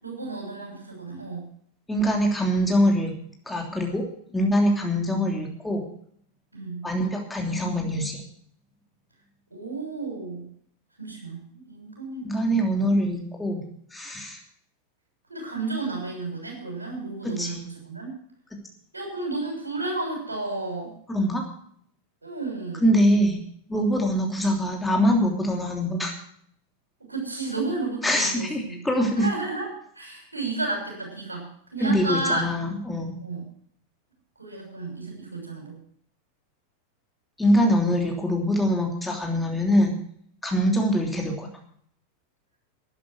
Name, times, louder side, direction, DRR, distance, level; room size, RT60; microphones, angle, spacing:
voice 1, 0.0-1.5 6.5-6.8 9.5-10.5 11.0-12.7 15.3-18.1 18.9-20.9 22.2-22.8 27.0-28.8 29.2-29.7 29.9-31.4 31.7-32.5 33.2-33.4 34.4-35.8 37.8-38.0 40.5-40.8, right 2 dB, 80° right, 0 dB, 6.6 m, -32 dB
voice 2, 1.9-3.1 3.5-4.0 4.3-5.8 6.8-8.2 12.2-13.6 13.9-14.4 17.2-17.6 21.1-21.4 22.8-23.4 23.7-26.1 28.0-29.3 31.8-33.2 37.4-39.9 40.4-41.5, equal, 5° left, 1 dB, 3.0 m, -23 dB
13.0 x 11.0 x 6.3 m, 0.63 s
figure-of-eight pair, 90°, 0 cm